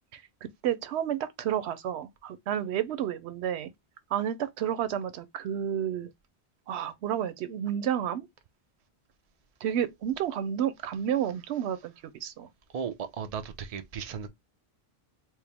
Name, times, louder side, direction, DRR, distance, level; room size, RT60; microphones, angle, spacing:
voice 1, 0.6-3.7 4.1-6.1 6.7-8.3 9.6-11.9 12.2-12.5, right 9 dB, 90° right, 0.9 m, -30 dB
voice 2, 12.7-14.3, right 7 dB, 45° right, 0.6 m, -36 dB
4.5 x 2.0 x 3.3 m
omnidirectional pair, 1.1 m